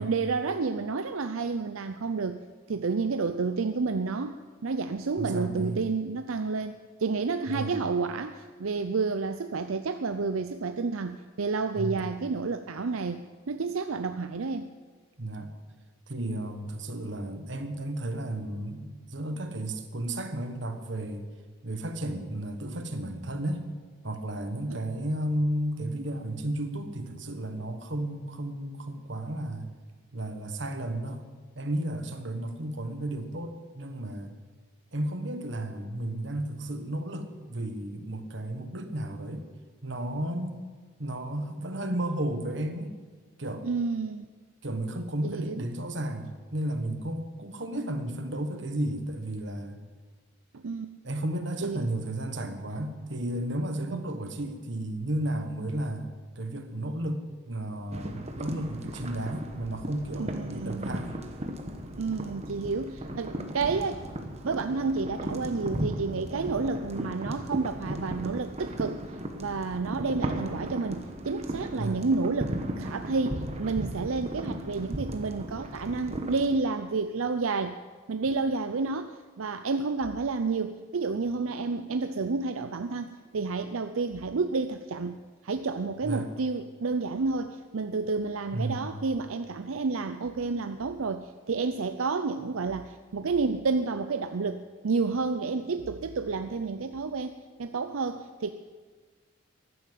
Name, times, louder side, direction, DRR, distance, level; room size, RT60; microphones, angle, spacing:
voice 1, 0.0-2.4 2.7-14.7 24.7-24.8 43.6-44.2 45.2-45.6 50.5-50.9 51.6-51.9 53.9-54.0 60.2-61.1 62.0-64.0 64.4-69.0 69.4-77.8 78.1-85.2 85.4-98.5, right 4 dB, 80° right, 9 dB, 0.6 m, -30 dB
voice 2, 5.2-5.8 7.5-7.8 11.8-12.0 15.2-15.5 16.1-21.3 21.6-23.6 24.0-29.7 30.1-31.3 31.5-34.3 34.9-39.5 39.8-40.6 41.0-43.0 43.4-43.7 44.6-49.8 51.0-56.1 56.4-61.2 71.8-72.0 86.0-86.3 88.5-89.0, right 1 dB, 55° right, 7 dB, 1.4 m, -33 dB
sound 1, 57.9-76.5, right 1 dB, 30° right, 1.2 m, -36 dB
14.5 x 11.5 x 7.5 m, 1.4 s
head